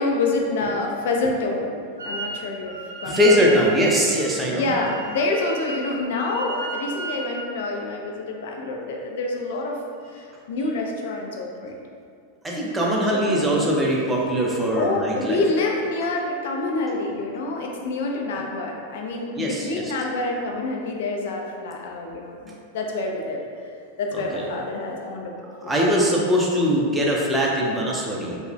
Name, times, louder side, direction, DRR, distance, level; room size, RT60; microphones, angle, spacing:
voice 1, 0.0-3.9 4.5-9.8 10.1-11.8 13.1-13.9 14.8-23.4 24.0-25.3 25.6-25.8, left 2 dB, 55° left, 0 dB, 0.3 m, -27 dB
Wind instrument woodwind instrument, 2.0-2.4 2.6-7.5, right 3 dB, 75° right, 0.5 m, -34 dB
voice 2, 3.1-4.7 12.4-15.4 19.4-19.8 24.1-24.5 25.6-28.4, equal, 10° right, -3 dB, 0.4 m, -21 dB
2.9 x 2.0 x 2.4 m, 2.2 s
figure-of-eight pair, 90°, 0 cm